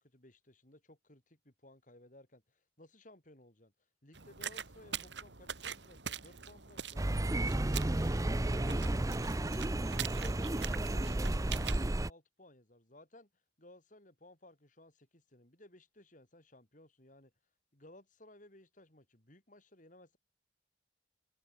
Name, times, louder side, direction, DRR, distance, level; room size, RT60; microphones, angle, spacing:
voice 1, 0.0-3.7 4.0-7.2 7.5-9.6 10.0-13.3 13.6-17.3 17.7-20.2, left 1 dB, 45° left, 4.8 m, -59 dB
sound 1, 4.1-11.9, right 8 dB, 80° right, 2.8 m, -44 dB
sound 2, 7.0-12.1, right 1 dB, 20° right, 0.6 m, -32 dB
head